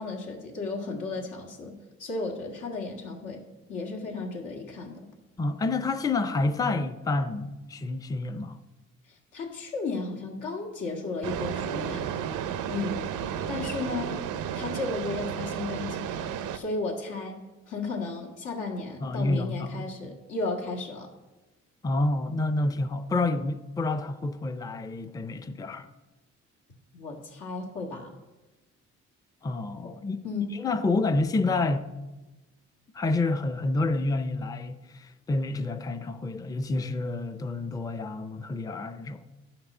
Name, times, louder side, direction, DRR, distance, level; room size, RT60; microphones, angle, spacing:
voice 1, 0.0-1.7 2.0-3.4 3.7-5.1 9.3-12.1 12.7-13.1 13.5-14.2 14.6-16.2 16.5-21.1 26.9-28.1 29.8-29.9 30.2-30.4, left 3 dB, 85° left, 1.9 m, -34 dB
voice 2, 5.4-8.6 19.0-19.9 21.8-25.9 29.4-30.2 30.5-31.9 32.9-39.2, left 2 dB, 10° left, 0.4 m, -28 dB
sound 1, 11.2-16.6, right 9 dB, 80° right, 0.6 m, -32 dB
11.5 x 5.9 x 5.5 m
cardioid pair, 90°, 30 cm